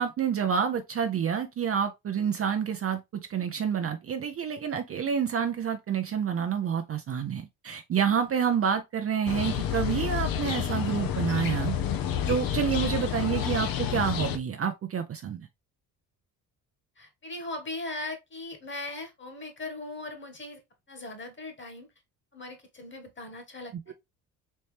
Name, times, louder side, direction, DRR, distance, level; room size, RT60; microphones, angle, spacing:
voice 1, 0.0-11.8 12.3-15.5, right 7 dB, 35° right, 0.6 m, -28 dB
sound 1, 9.3-14.4, left 9 dB, 55° left, 0.8 m, -29 dB
voice 2, 17.0-20.6 20.9-21.9 22.3-23.9, left 2 dB, 30° left, 1.6 m, -39 dB
4.2 x 3.1 x 3.3 m
supercardioid pair, 85°, 40 cm